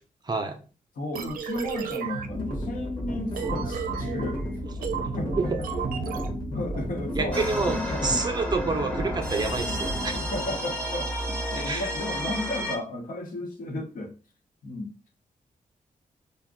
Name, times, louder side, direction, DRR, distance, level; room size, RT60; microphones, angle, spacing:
voice 1, 0.3-0.6 5.4-5.5 7.2-10.2 11.6-11.9, right 3 dB, 30° right, 5 dB, 0.5 m, -28 dB
voice 2, 1.0-4.4 5.1-5.7 6.1-8.3 9.7-14.1 14.6-15.0, left 1 dB, 75° left, 1 dB, 0.9 m, -34 dB
sound 1, 1.1-6.9, right 7 dB, 85° right, 0.4 m, -34 dB
sound 2, 2.3-12.4, equal, 30° left, 0.9 m, -34 dB
sound 3, 7.3-12.8, equal, 10° left, 0.7 m, -32 dB
2.5 x 2.2 x 3.6 m, 0.34 s
wide cardioid pair, 110°, 14 cm